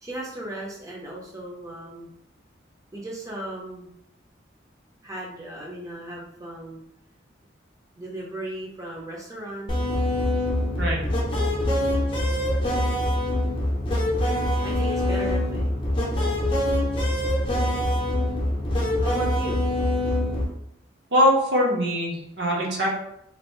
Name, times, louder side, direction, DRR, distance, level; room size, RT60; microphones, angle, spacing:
voice 1, 0.0-2.1 2.9-3.9 5.0-6.8 8.0-9.8 14.2-15.7 19.0-20.0 20.4-20.5, right 1 dB, 15° right, -3 dB, 0.7 m, -36 dB
sound 1, 9.7-20.4, left 1 dB, 25° left, 0.7 m, -24 dB
voice 2, 21.1-22.9, equal, 60° right, -3 dB, 0.9 m, -22 dB
3.0 x 2.6 x 3.1 m, 0.76 s
head